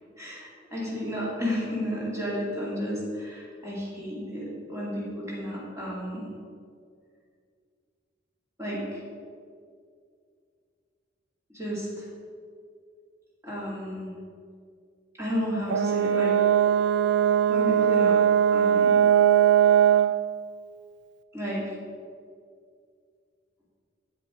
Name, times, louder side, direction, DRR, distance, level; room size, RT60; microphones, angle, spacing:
voice 1, 0.2-6.2 8.6-9.0 11.5-12.1 13.4-14.1 15.2-16.3 16.6-16.8 17.5-18.2 18.5-19.0 21.3-21.7, equal, 15° right, -6 dB, 2.6 m, -32 dB
Brass instrument, 15.7-20.2, right 9 dB, 65° right, 0.3 m, -20 dB
8.4 x 7.4 x 4.6 m, 2.2 s
head